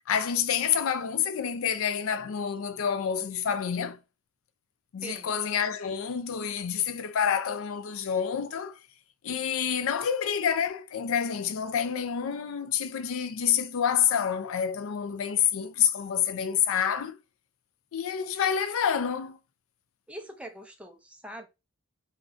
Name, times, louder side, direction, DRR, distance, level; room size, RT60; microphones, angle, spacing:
voice 1, 0.1-4.0 4.9-8.8 9.2-17.2 17.9-19.4, left 8 dB, 70° left, 0.4 m, -28 dB
voice 2, 20.1-21.5, right 1 dB, 5° right, 0.3 m, -42 dB
2.4 x 2.2 x 3.7 m
head